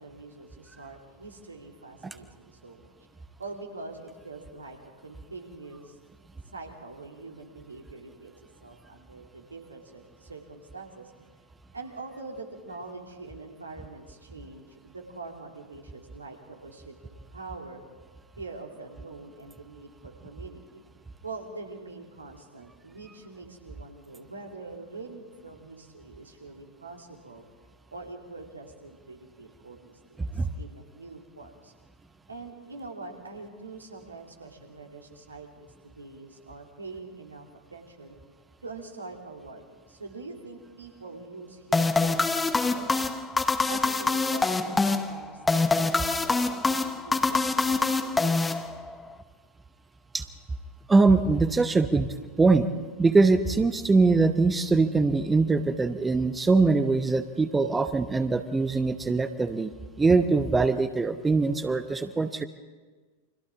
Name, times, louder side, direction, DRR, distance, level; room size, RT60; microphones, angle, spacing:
voice 1, 0.0-2.9 3.4-4.8 5.0-6.0 6.5-8.3 8.6-11.1 11.7-16.4 16.6-16.9 17.3-17.8 18.4-20.8 21.2-27.4 27.9-31.7 32.3-38.2 38.6-43.0 43.7-48.7, right 3 dB, 80° right, 1 dB, 2.9 m, -44 dB
sound 1, 41.7-49.1, left 3 dB, 10° left, 1.0 m, -25 dB
voice 2, 50.9-52.7 53.0-59.7 60.0-62.5, right 3 dB, 10° right, 10 dB, 0.9 m, -22 dB
29.5 x 25.0 x 3.7 m, 1.4 s
figure-of-eight pair, 90°, 0 cm